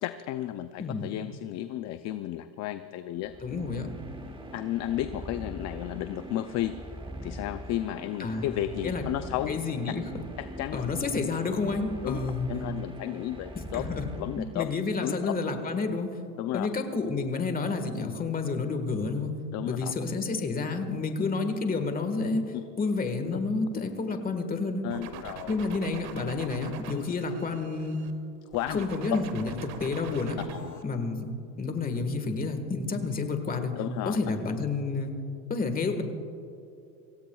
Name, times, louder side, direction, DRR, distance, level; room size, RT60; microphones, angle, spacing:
voice 1, 0.0-3.3 4.5-6.7 7.2-9.5 10.4-10.8 12.0-12.2 12.5-13.8 14.2-14.7 15.0-15.2 16.4-16.7 19.5-19.9 22.5-22.6 24.8-25.5 26.9-27.0 28.5-28.8 30.5-30.8 33.8-34.2, left 13 dB, 35° left, 10 dB, 0.5 m, -33 dB
sound 1, 3.1-14.9, right 1 dB, 10° right, 1.3 m, -42 dB
voice 2, 3.4-3.9 8.2-8.5 8.8-9.0 9.5-10.0 10.7-12.5 13.6-14.0 14.4-16.2 16.5-19.3 19.7-22.4 22.8-24.9 25.5-28.0 28.7-30.4 30.8-31.3 31.6-33.7 34.1-35.1 35.5-36.0, left 4 dB, 20° left, 6 dB, 1.6 m, -30 dB
sound 2, 24.9-28.1 28.5-30.8, right 7 dB, 50° right, 1.6 m, -43 dB
25.0 x 17.0 x 2.4 m, 2.7 s
supercardioid pair, 125°, 46 cm